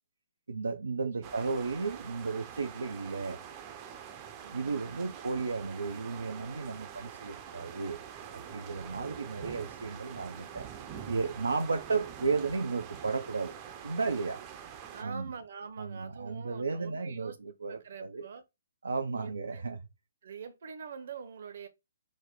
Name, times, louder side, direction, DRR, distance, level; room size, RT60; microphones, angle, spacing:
voice 1, 0.5-3.4 4.5-8.0 8.3-10.7 11.1-13.5 13.8-14.4 15.0-15.3 15.8-18.3 18.8-19.8, right 4 dB, 70° right, 0.5 m, -34 dB
voice 2, 1.0-1.4 4.4-5.1 8.9-9.2 14.3-14.5 14.9-17.4 17.7-18.4 19.1-19.7 20.2-21.7, right 6 dB, 55° right, 0.8 m, -45 dB
sound 1, 1.2-15.0, right 9 dB, 25° right, 0.6 m, -45 dB
4.2 x 2.1 x 4.6 m
figure-of-eight pair, 130°, 0 cm